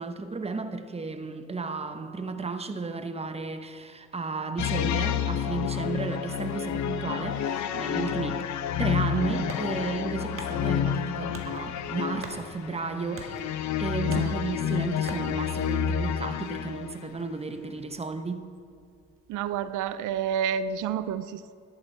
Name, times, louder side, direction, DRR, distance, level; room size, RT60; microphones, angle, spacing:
voice 1, 0.0-8.5 8.8-18.5, right 4 dB, 20° right, 0.9 m, -33 dB
sound 1, 4.6-17.1, left 9 dB, 70° left, 0.7 m, -29 dB
sound 2, 8.9-20.2, right 4 dB, 45° right, 1.7 m, -48 dB
voice 2, 19.3-21.5, right 8 dB, 85° right, 0.5 m, -29 dB
13.5 x 10.5 x 4.5 m
cardioid pair, 90°, 30 cm